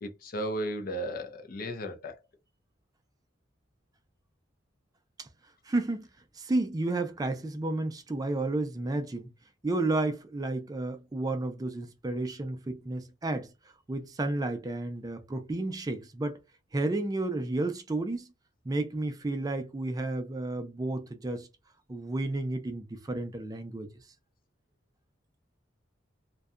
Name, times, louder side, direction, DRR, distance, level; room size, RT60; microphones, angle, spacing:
voice 1, 0.0-2.2, equal, 45° left, 0.4 m, -35 dB
voice 2, 5.6-6.1 6.3-9.3 9.6-13.5 13.9-16.4 16.7-18.3 18.7-21.5 21.9-23.9, right 2 dB, 20° right, 0.3 m, -32 dB
2.6 x 2.2 x 2.3 m
head